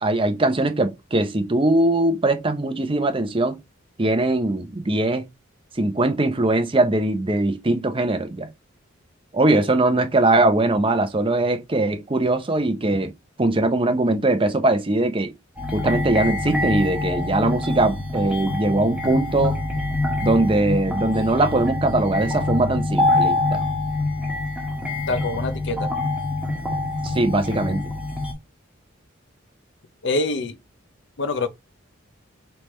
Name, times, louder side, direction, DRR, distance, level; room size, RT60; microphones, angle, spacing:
voice 1, 0.0-3.6 4.0-5.2 5.8-8.5 9.3-13.1 13.4-15.3 15.7-19.6 20.2-23.6 27.0-27.8, right 2 dB, 25° right, 0.6 m, -21 dB
sound 1, 15.6-28.3, left 2 dB, 5° right, 1.2 m, -25 dB
voice 2, 25.1-25.9 30.0-30.6 31.2-31.5, left 3 dB, 60° left, 0.6 m, -25 dB
3.3 x 3.3 x 4.2 m
head